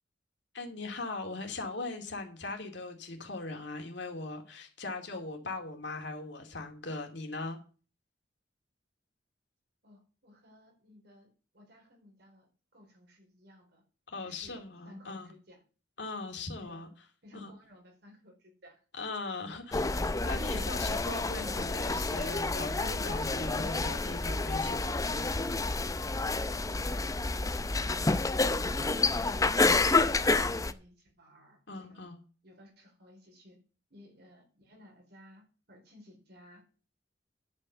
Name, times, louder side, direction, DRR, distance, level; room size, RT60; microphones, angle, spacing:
voice 1, 0.5-7.6 14.1-15.3 16.0-16.9 17.3-17.5 19.0-25.3 31.7-32.2, left 3 dB, 75° left, 3 dB, 2.5 m, -40 dB
voice 2, 9.8-13.8 14.2-15.6 16.6-16.9 17.2-18.8 19.5-19.6 28.8-32.1 32.4-33.6 33.9-36.6, left 1 dB, 65° right, 2 dB, 4.2 m, -57 dB
sound 1, 19.7-30.7, left 3 dB, 20° left, 0.6 m, -29 dB
10.5 x 5.6 x 6.8 m, 0.37 s
head